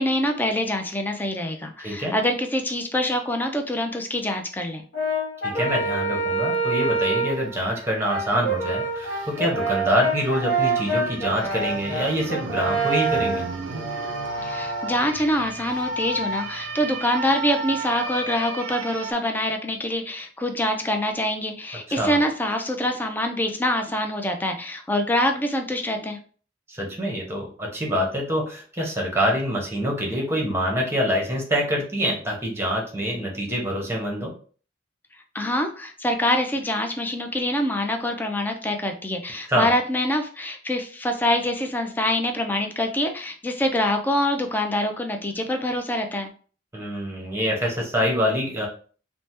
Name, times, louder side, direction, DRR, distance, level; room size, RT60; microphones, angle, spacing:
voice 1, 0.0-4.9 14.4-26.2 35.3-46.3, left 1 dB, 10° left, 5 dB, 0.3 m, -25 dB
voice 2, 1.8-2.1 5.4-13.4 22.0-22.2 26.7-34.3 39.5-39.7 46.7-48.7, equal, 15° right, -1 dB, 0.7 m, -25 dB
Brass instrument, 4.9-7.5 8.0-15.0, right 3 dB, 70° left, 0.8 m, -26 dB
sound 1, 6.0-6.1 6.5-6.6 7.0-19.1, right 2 dB, 90° right, 0.4 m, -34 dB
3.2 x 2.1 x 2.8 m, 0.42 s
head